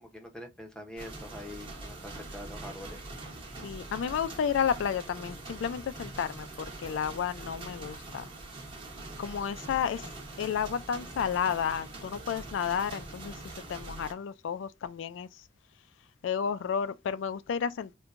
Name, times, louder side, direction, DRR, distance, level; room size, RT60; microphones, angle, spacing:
voice 1, 0.0-3.0, left 1 dB, 5° left, 0.7 m, -44 dB
sound 1, 1.0-14.1, right 2 dB, 25° right, 1.1 m, -43 dB
voice 2, 3.6-8.3 9.2-10.1 10.4-13.4 13.7-15.4 16.2-17.9, left 7 dB, 75° left, 0.3 m, -32 dB
4.4 x 2.2 x 2.5 m
head